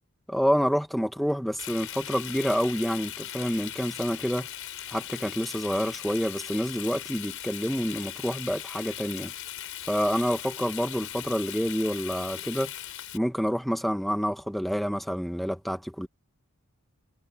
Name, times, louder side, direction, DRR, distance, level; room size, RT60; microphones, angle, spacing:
voice 1, 0.3-4.5 4.9-9.3 9.9-12.7 13.1-16.1, equal, ahead, 1.7 m, -28 dB
Frying (food), 1.6-13.2, left 12 dB, 65° left, 5.4 m, -39 dB
head